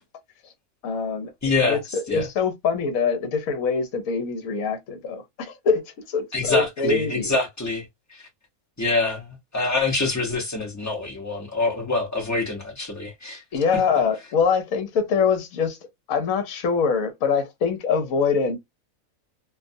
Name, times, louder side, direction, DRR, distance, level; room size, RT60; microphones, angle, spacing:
voice 1, 0.8-1.3 1.6-7.3 13.5-15.8 16.1-18.6, left 5 dB, 70° left, 1.1 m, -24 dB
voice 2, 1.4-1.8 2.1-2.3 6.3-7.9 8.1-8.2 8.8-13.4, left 3 dB, 20° left, 0.6 m, -25 dB
2.5 x 2.3 x 2.5 m
omnidirectional pair, 1.5 m